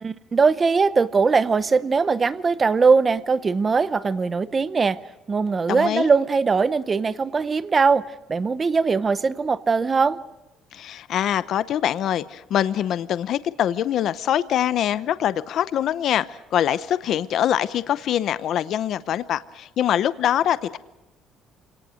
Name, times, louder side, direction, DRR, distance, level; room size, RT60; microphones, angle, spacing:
voice 1, 0.0-5.0 5.3-10.2, right 4 dB, 20° right, 0.7 m, -21 dB
voice 2, 5.7-6.1 10.7-20.8, left 10 dB, 50° left, 0.7 m, -24 dB
27.0 x 18.5 x 6.4 m
cardioid pair, 160°, 0 cm